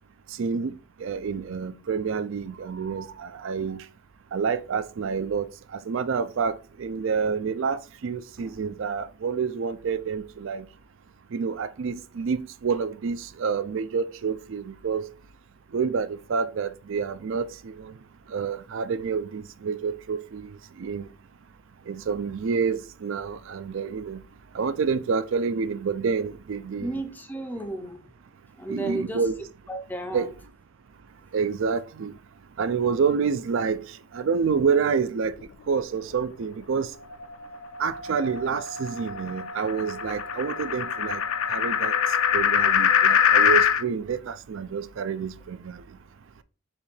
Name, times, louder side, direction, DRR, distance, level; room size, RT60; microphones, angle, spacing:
voice 1, 0.4-3.8 4.3-5.5 5.9-10.7 11.3-15.1 15.7-17.9 18.3-20.5 20.8-21.0 21.9-24.2 24.5-26.9 28.7-29.4 30.1-30.3 31.3-32.1 32.6-33.8 34.1-35.4 35.7-36.9 37.8-41.2 41.5-41.9 42.3-45.8, right 5 dB, 60° right, 0.4 m, -28 dB
voice 2, 26.8-28.0 28.6-29.3 29.7-30.3, right 2 dB, 10° left, 0.5 m, -33 dB
sound 1, 37.1-43.8, left 8 dB, 65° left, 0.4 m, -24 dB
4.3 x 2.7 x 4.3 m
head